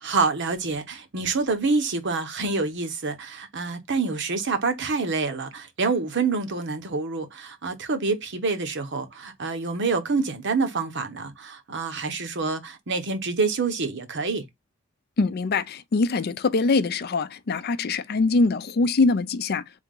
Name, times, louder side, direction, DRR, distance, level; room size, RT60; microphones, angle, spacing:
voice 1, 0.0-14.4, right 4 dB, 60° right, 1.0 m, -27 dB
voice 2, 15.2-19.6, left 3 dB, 50° left, 0.5 m, -23 dB
3.6 x 2.8 x 3.7 m
head